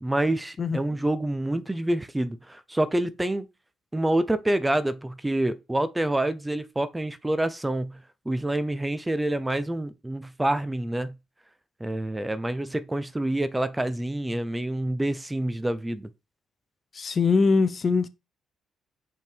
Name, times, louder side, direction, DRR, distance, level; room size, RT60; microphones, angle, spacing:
voice 1, 0.0-3.5 3.9-11.2 11.8-16.1, right 1 dB, 10° right, 0.6 m, -27 dB
voice 2, 16.9-18.1, left 4 dB, 40° left, 0.6 m, -22 dB
5.7 x 3.6 x 4.6 m
cardioid pair, 90°, 0 cm